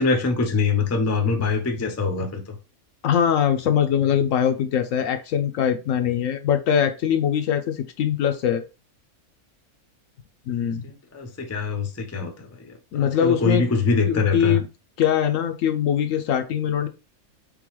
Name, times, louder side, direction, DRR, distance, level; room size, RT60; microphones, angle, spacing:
voice 1, 0.0-2.6 10.8-14.6, left 4 dB, 20° left, 0.4 m, -24 dB
voice 2, 3.0-8.6 10.5-10.8 12.9-13.7 14.1-14.6 15.0-16.9, left 8 dB, 70° left, 0.9 m, -22 dB
4.0 x 3.8 x 3.0 m
omnidirectional pair, 1.5 m